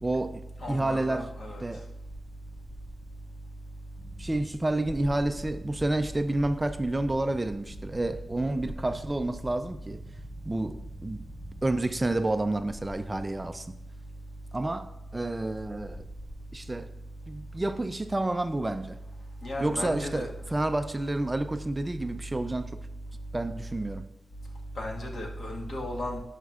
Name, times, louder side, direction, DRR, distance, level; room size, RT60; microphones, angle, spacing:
voice 1, 0.0-1.3 1.6-1.9 4.2-10.0 10.5-11.2 11.6-13.7 14.5-16.0 16.5-16.9 17.3-19.0 19.6-22.7 23.3-24.1, right 2 dB, 15° right, 9 dB, 0.3 m, -29 dB
voice 2, 0.6-1.6 19.4-20.3 24.7-26.2, left 1 dB, 60° left, -1 dB, 1.5 m, -35 dB
sound 1, 4.0-12.2, equal, ahead, 1.1 m, -46 dB
17.5 x 5.8 x 2.4 m, 0.89 s
wide cardioid pair, 145°, 0 cm